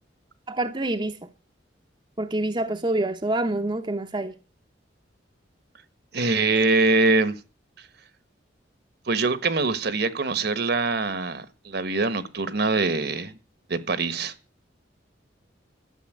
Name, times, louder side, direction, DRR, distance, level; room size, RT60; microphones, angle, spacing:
voice 1, 0.5-1.3 2.2-4.3, right 2 dB, 25° right, 0.9 m, -27 dB
voice 2, 6.1-7.3 9.1-13.4 13.7-14.3, right 3 dB, 60° right, 1.4 m, -23 dB
12.5 x 7.1 x 9.3 m
head